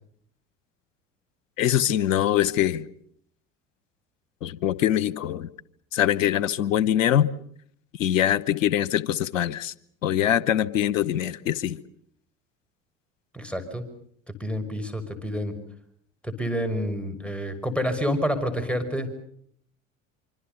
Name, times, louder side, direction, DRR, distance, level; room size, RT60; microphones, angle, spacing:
voice 1, 1.6-2.9 4.4-5.5 5.9-7.3 8.0-9.7 10.0-11.8, left 11 dB, 75° left, 20 dB, 1.0 m, -23 dB
voice 2, 13.3-13.8 14.4-15.5 16.2-19.2, equal, 5° left, 9 dB, 6.0 m, -28 dB
26.0 x 25.5 x 6.9 m, 0.66 s
figure-of-eight pair, 60°, 40 cm